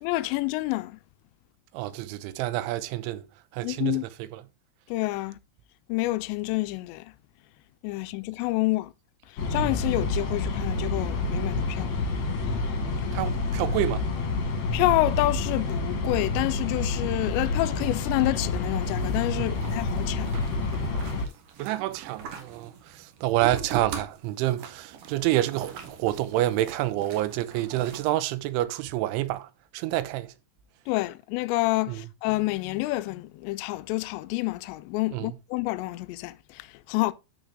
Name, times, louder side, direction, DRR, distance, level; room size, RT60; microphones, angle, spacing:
voice 1, 0.0-1.0 3.6-4.0 4.9-5.4 5.9-7.1 7.8-8.9 9.5-11.9 14.7-20.3 30.9-37.1, left 19 dB, 85° left, 2.6 m, -28 dB
voice 2, 1.7-3.2 3.5-4.4 13.1-14.1 19.4-19.6 21.6-30.3 31.9-32.0 35.1-35.3, right 15 dB, 85° right, 3.1 m, -28 dB
sound 1, 9.4-21.3, left 3 dB, 55° left, 2.0 m, -28 dB
sound 2, 18.8-28.1, right 6 dB, 60° right, 2.3 m, -41 dB
12.5 x 4.7 x 3.6 m
omnidirectional pair, 5.5 m